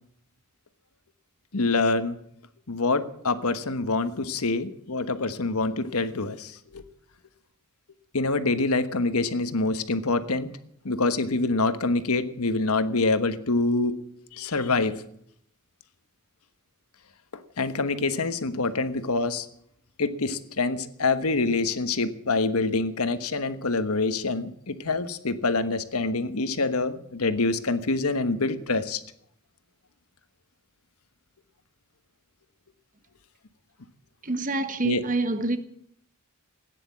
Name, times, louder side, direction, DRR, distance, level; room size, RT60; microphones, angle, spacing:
voice 1, 1.5-2.2 2.7-6.8 8.1-10.5 10.8-14.0 14.3-15.0 17.3-19.5 20.0-29.0 34.8-35.1, left 3 dB, 80° left, 1.3 m, -26 dB
voice 2, 34.2-35.6, right 2 dB, 40° right, 1.3 m, -26 dB
16.0 x 9.9 x 8.3 m
head